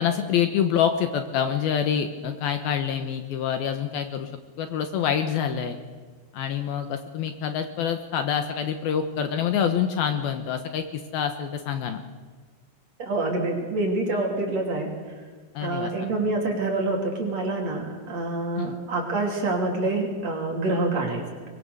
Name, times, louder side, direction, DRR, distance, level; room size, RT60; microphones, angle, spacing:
voice 1, 0.0-4.3 4.6-5.8 6.3-12.0 15.5-15.9 18.6-18.7, left 8 dB, 70° left, 8 dB, 2.7 m, -26 dB
voice 2, 13.0-14.9 15.6-21.2, right 2 dB, 40° right, 1 dB, 3.9 m, -26 dB
23.5 x 21.5 x 6.9 m, 1.5 s
omnidirectional pair, 5.0 m